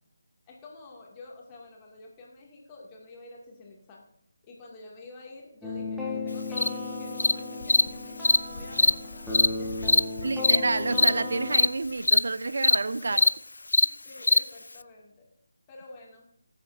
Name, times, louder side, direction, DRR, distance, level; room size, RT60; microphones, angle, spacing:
voice 1, 0.5-4.0 4.4-10.5 13.0-13.2 13.8-15.3 15.7-16.3, left 2 dB, 20° left, 2.3 m, -48 dB
sound 1, 5.6-11.7, left 3 dB, ahead, 1.5 m, -35 dB
Cricket, 6.6-6.7 7.2-7.3 7.7-7.8 8.2-8.4 8.7-8.9 9.3-9.5 9.9-10.0 10.4-10.6 10.9-11.1 11.5-11.7 12.0-12.2 12.6-12.8 13.1-13.3 13.7-13.9 14.2-14.4, left 2 dB, 70° left, 0.3 m, -20 dB
sound 2, 7.6-12.8, left 2 dB, 50° left, 0.9 m, -45 dB
voice 2, 10.2-13.3, right 3 dB, 60° right, 0.4 m, -29 dB
20.0 x 7.9 x 2.7 m
figure-of-eight pair, 155°, 0 cm